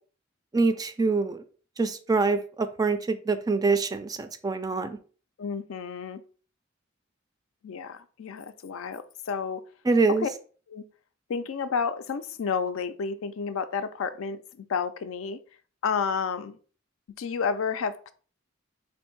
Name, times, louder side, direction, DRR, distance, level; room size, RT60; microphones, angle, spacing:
voice 1, 0.5-1.4 1.8-5.0 9.9-10.3, right 3 dB, 20° right, 0.3 m, -25 dB
voice 2, 5.4-6.2 7.6-9.6 10.1-10.3 10.7-10.9 11.3-15.4 15.8-16.6 17.2-18.1, left 6 dB, 85° left, 0.4 m, -31 dB
3.4 x 2.6 x 4.4 m
head